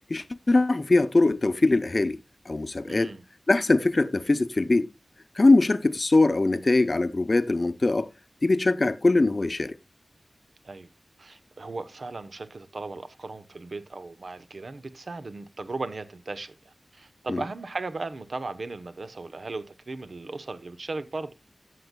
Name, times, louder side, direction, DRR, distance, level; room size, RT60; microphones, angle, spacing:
voice 1, 0.1-2.2 2.5-3.1 3.5-4.9 5.3-8.1 8.4-9.8 17.3-17.4, left 2 dB, 50° left, 0.7 m, -22 dB
voice 2, 2.9-3.2 10.6-10.9 11.2-21.3, right 3 dB, 70° right, 0.8 m, -37 dB
13.5 x 7.7 x 2.2 m
wide cardioid pair, 55°, 0 cm